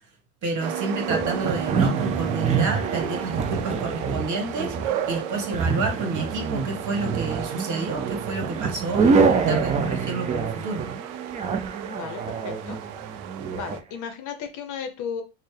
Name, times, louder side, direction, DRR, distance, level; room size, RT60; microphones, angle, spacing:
voice 1, 0.4-10.8, right 3 dB, 40° right, 4 dB, 1.4 m, -30 dB
sound 1, 0.6-13.8, right 9 dB, 65° right, 0.6 m, -34 dB
sound 2, 1.1-13.8, right 5 dB, 20° right, 0.3 m, -26 dB
voice 2, 11.8-12.8 13.5-15.2, left 7 dB, 45° left, 7 dB, 0.7 m, -34 dB
4.1 x 2.1 x 3.2 m, 0.29 s
hypercardioid pair, 90°, 45 cm